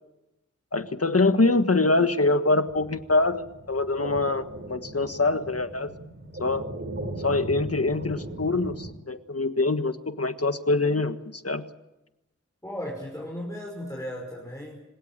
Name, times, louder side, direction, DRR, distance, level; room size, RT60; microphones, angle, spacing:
voice 1, 0.7-5.9 6.4-6.7 7.2-11.6, left 3 dB, 55° left, 9 dB, 1.6 m, -24 dB
sound 1, 2.7-8.9, right 1 dB, 40° right, 3.3 m, -38 dB
voice 2, 12.6-14.8, equal, 10° left, -1 dB, 5.7 m, -35 dB
26.0 x 17.0 x 9.0 m, 0.95 s
wide cardioid pair, 40°, 30 cm